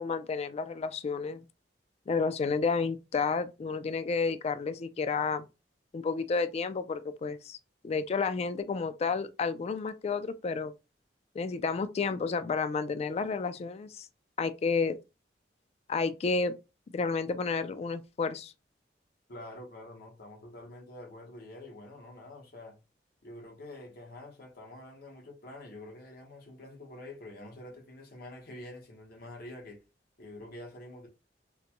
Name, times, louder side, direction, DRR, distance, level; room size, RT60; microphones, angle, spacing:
voice 1, 0.0-1.4 2.1-5.5 5.9-7.6 7.8-10.7 11.4-14.1 14.4-15.0 15.9-16.6 16.9-18.5, left 4 dB, 35° left, 0.3 m, -31 dB
voice 2, 19.3-22.8 23.2-29.8 30.2-31.1, left 1 dB, 60° left, 1.0 m, -47 dB
3.9 x 2.1 x 2.9 m
head